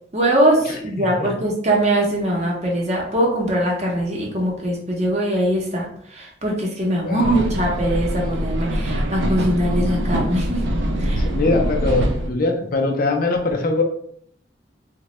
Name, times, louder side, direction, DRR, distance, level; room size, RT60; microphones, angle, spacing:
voice 1, 0.1-5.9 6.1-10.6 11.0-11.3, right 1 dB, 35° right, -2 dB, 0.7 m, -21 dB
voice 2, 0.7-1.3 7.0-7.3 11.2-13.8, left 3 dB, 50° left, 2 dB, 0.5 m, -22 dB
sound 1, 7.2-12.3, equal, 90° right, 0.5 m, -23 dB
3.0 x 2.2 x 2.9 m, 0.65 s
head